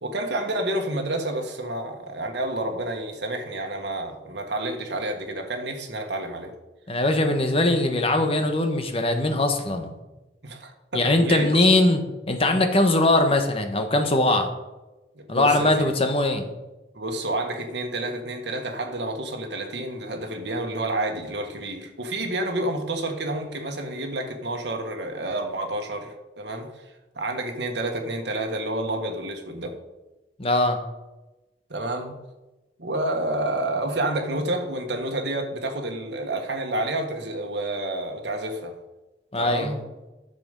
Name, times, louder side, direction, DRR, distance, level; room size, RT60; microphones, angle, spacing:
voice 1, 0.0-6.5 10.4-11.6 15.1-15.9 16.9-29.8 31.7-32.1 32.8-38.7 39.3-39.8, right 1 dB, 70° right, 3 dB, 1.5 m, -29 dB
voice 2, 6.9-9.9 10.9-12.0 12.3-14.5 15.3-16.5 30.4-30.8 39.3-39.7, left 2 dB, 30° left, 5 dB, 1.1 m, -21 dB
10.5 x 6.9 x 5.3 m, 1.1 s
head